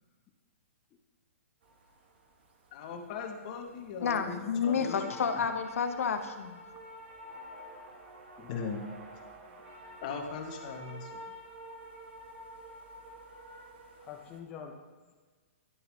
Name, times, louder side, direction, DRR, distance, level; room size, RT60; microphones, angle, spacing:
sound 1, 1.6-14.4, right 1 dB, 45° right, 0.9 m, -49 dB
voice 1, 2.7-5.0 8.5-8.9 10.0-11.3, left 5 dB, 30° left, 3 dB, 0.9 m, -39 dB
voice 2, 4.0-6.6, left 6 dB, 75° left, 7 dB, 0.8 m, -30 dB
voice 3, 14.0-15.1, left 7 dB, 15° left, 1 dB, 0.4 m, -46 dB
10.5 x 6.8 x 3.1 m, 1.4 s
hypercardioid pair, 170°, 8 cm